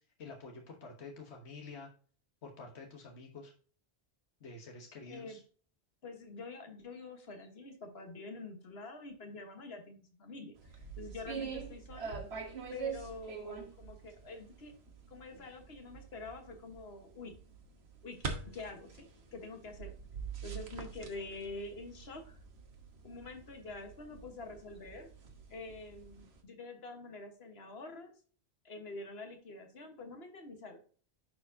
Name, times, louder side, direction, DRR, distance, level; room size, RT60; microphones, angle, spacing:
voice 1, 0.2-1.9 2.4-3.5 4.4-5.4, left 3 dB, 90° left, 2 dB, 1.4 m, -48 dB
voice 2, 5.1-5.4 6.0-10.5 11.0-12.2 12.7-14.7 15.1-17.3 18.0-19.9 20.4-22.4 23.0-25.1 25.5-28.1 28.6-30.8, left 3 dB, 70° left, 4 dB, 1.6 m, -46 dB
sound 1, 10.6-26.4, right 5 dB, 75° right, 1.5 m, -45 dB
10.5 x 4.5 x 2.7 m, 0.42 s
omnidirectional pair, 1.1 m